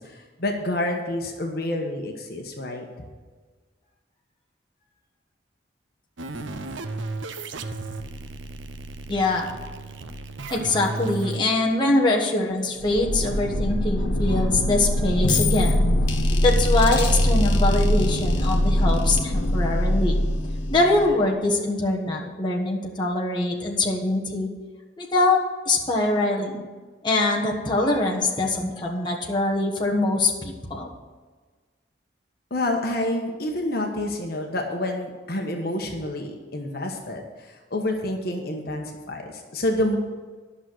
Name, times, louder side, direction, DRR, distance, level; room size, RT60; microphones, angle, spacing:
voice 1, 0.0-2.8 32.5-40.0, left 1 dB, 55° left, 2 dB, 1.2 m, -28 dB
sound 1, 6.2-11.4, right 2 dB, 85° right, 0.7 m, -34 dB
voice 2, 9.1-9.5 10.5-15.8 16.4-20.2 20.7-24.5 25.0-25.4 25.6-26.6 27.0-30.9, left 2 dB, 25° left, -2 dB, 1.4 m, -23 dB
sound 2, 12.8-21.3, left 1 dB, 85° left, 1.4 m, -22 dB
11.0 x 6.4 x 7.7 m, 1.4 s
head